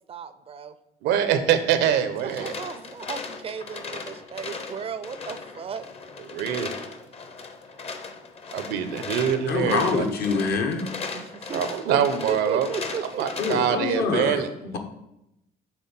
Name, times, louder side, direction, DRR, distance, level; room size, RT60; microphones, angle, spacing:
voice 1, 0.1-0.8 2.2-5.9 11.1-13.2, right 6 dB, 35° right, 13 dB, 0.4 m, -35 dB
voice 2, 1.0-2.5 6.3-6.7 8.5-10.0 11.5-12.7 13.2-14.5, right 9 dB, 85° right, 10 dB, 0.7 m, -24 dB
sound 1, 2.1-13.7, left 4 dB, 35° left, 0.7 m, -37 dB
voice 3, 9.5-10.9 13.4-14.8, left 4 dB, 65° left, 6 dB, 1.0 m, -25 dB
6.3 x 3.6 x 5.5 m, 0.86 s
cardioid pair, 110°, 17 cm